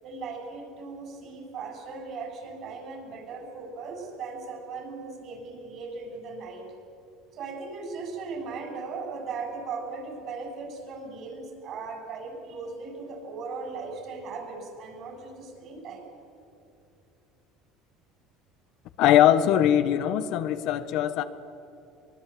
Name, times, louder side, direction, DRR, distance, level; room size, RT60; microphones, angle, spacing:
voice 1, 0.0-6.7 7.3-16.0, right 4 dB, 50° right, 4 dB, 7.4 m, -38 dB
voice 2, 19.0-21.2, left 11 dB, 65° left, 12 dB, 1.4 m, -21 dB
24.0 x 21.0 x 8.8 m, 2.8 s
supercardioid pair, 110°, 0 cm